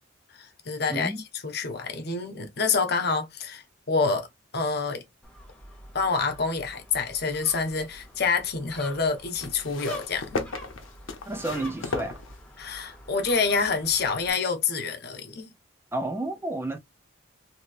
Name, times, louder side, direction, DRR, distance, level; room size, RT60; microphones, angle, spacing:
voice 1, 0.3-1.1 1.4-4.3 4.5-5.0 5.9-10.5 12.6-15.5, left 4 dB, 55° left, 0.9 m, -27 dB
voice 2, 0.9-1.2 11.3-12.2 15.9-16.8, right 2 dB, 10° right, 0.4 m, -31 dB
Gull seagull, 5.2-14.3, left 1 dB, 5° left, 0.9 m, -47 dB
sound 1, 7.4-8.3 9.4-12.8 13.7-13.8, left 3 dB, 85° left, 0.8 m, -36 dB
3.1 x 2.9 x 2.6 m
head